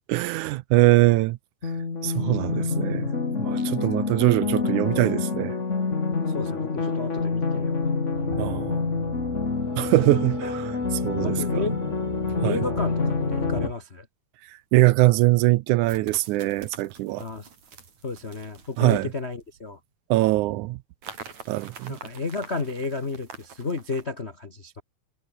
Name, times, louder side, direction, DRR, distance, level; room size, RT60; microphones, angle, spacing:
voice 1, 0.0-1.4 2.0-3.1 3.4-5.6 8.4-8.8 9.8-11.6 12.4-12.6 14.7-17.2 18.8-19.1 20.1-20.8 21.5-22.0, right 18 dB, 80° right, 2.0 m, -22 dB
sound 1, 1.6-13.7, left 4 dB, 25° left, 1.9 m, -27 dB
voice 2, 6.3-7.8 11.2-11.8 12.4-14.1 17.2-17.5 18.0-19.8 21.9-24.8, left 3 dB, 45° left, 0.8 m, -32 dB
sound 2, 8.1-13.7, right 2 dB, 40° right, 0.4 m, -37 dB
sound 3, 14.5-14.6 15.8-19.7 21.0-24.1, right 6 dB, 60° right, 5.0 m, -45 dB
omnidirectional pair, 3.7 m